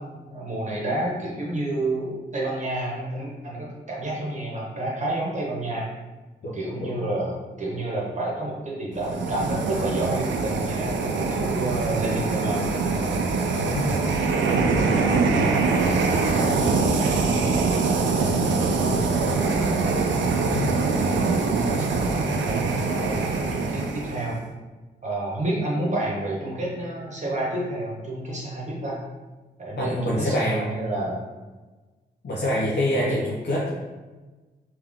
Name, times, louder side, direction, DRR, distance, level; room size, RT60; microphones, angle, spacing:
voice 1, 0.0-5.9 6.5-13.0 14.1-15.6 16.0-16.7 16.9-19.8 21.0-24.4 25.0-29.0 29.6-31.2 33.0-33.2, right 1 dB, 40° right, -4 dB, 1.2 m, -30 dB
voice 2, 6.4-7.0 13.6-13.9 14.7-15.0 20.5-20.7 29.8-30.9 32.2-33.7, left 1 dB, 65° left, -5 dB, 0.8 m, -26 dB
sound 1, 9.0-24.4, right 4 dB, 90° right, 0.4 m, -23 dB
3.5 x 2.9 x 3.5 m, 1.2 s
cardioid pair, 60°, 19 cm